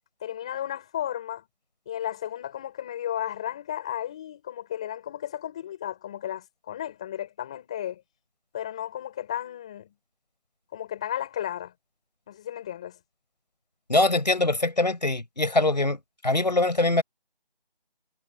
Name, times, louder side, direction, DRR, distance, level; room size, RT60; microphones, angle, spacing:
voice 1, 0.2-1.4 1.9-8.0 8.5-9.9 10.7-11.7 12.3-13.0, left 11 dB, 5° left, 6.2 m, -34 dB
voice 2, 13.9-17.0, left 2 dB, 45° left, 5.5 m, -23 dB
figure-of-eight pair, 180°, 30 cm